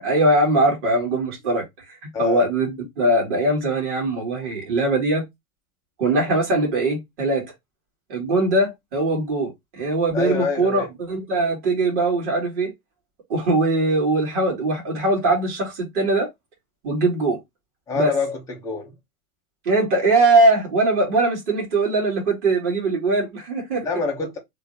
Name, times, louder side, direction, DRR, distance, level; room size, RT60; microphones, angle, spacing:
voice 1, 0.0-5.2 6.0-7.5 8.1-9.5 9.8-12.7 13.3-16.3 16.8-17.4 17.9-18.1 19.7-23.9, right 2 dB, 50° right, 1.9 m, -21 dB
voice 2, 2.1-2.4 10.1-10.9 17.9-18.9 23.8-24.4, left 4 dB, 5° left, 0.6 m, -26 dB
3.2 x 2.1 x 3.8 m
supercardioid pair, 145°, 45 cm